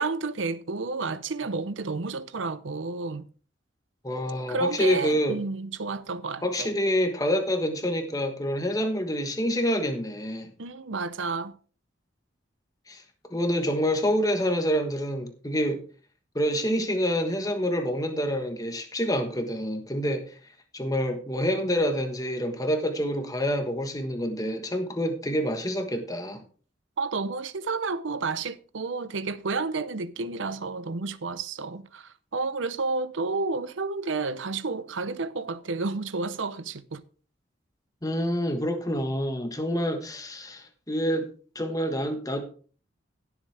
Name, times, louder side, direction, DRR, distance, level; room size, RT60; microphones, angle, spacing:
voice 1, 0.0-3.2 4.5-6.7 10.6-11.5 27.0-37.0, right 3 dB, 85° right, 0.7 m, -31 dB
voice 2, 4.0-5.4 6.4-10.5 12.9-13.0 13.3-15.8 16.3-20.3 20.7-26.4 38.0-41.3 41.5-42.4, equal, 20° left, 1.4 m, -27 dB
16.5 x 7.3 x 3.4 m
head